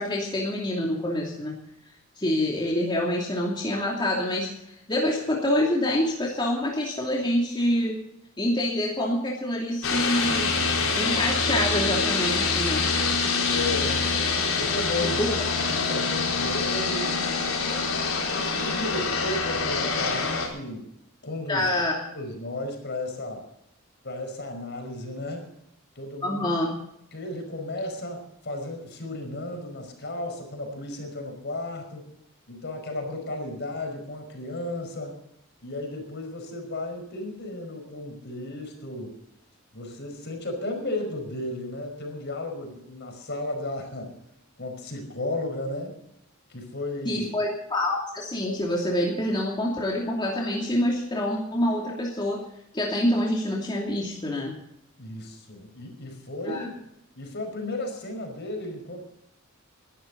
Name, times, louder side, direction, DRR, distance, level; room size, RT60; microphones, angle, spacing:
voice 1, 0.0-1.6 2.2-8.0 8.4-10.6 10.9-12.9 15.2-15.3 15.5-15.6 21.5-21.9 26.2-26.7 47.0-52.4 52.7-54.6 56.5-56.6, left 1 dB, 20° left, -3 dB, 2.7 m, -26 dB
sound 1, 9.8-20.5, left 4 dB, 75° left, 4.3 m, -25 dB
voice 2, 13.5-14.0 14.5-15.2 15.5-17.1 17.6-20.9 21.2-21.7 22.1-23.5 24.0-25.5 25.9-26.5 27.1-32.0 32.5-35.2 35.6-39.1 39.7-44.1 44.6-45.9 46.5-47.3 55.0-56.7 57.1-59.0, left 2 dB, 55° left, 4 dB, 5.2 m, -34 dB
21.5 x 12.5 x 4.0 m, 0.78 s
head